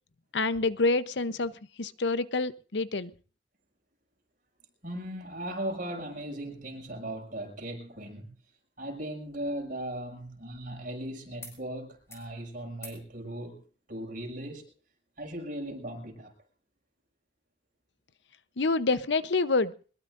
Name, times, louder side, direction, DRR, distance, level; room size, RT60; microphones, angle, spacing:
voice 1, 0.3-1.5 1.8-3.1 18.6-19.7, left 3 dB, 75° left, 0.8 m, -27 dB
voice 2, 4.8-8.3 8.8-13.6 13.9-14.7 15.2-16.3, right 1 dB, 50° right, 6.8 m, -38 dB
sound 1, 9.2-11.0 11.4-11.6 11.9-12.3 12.7-13.1 14.4-14.5, left 2 dB, 15° left, 5.5 m, -51 dB
23.0 x 21.0 x 2.6 m
head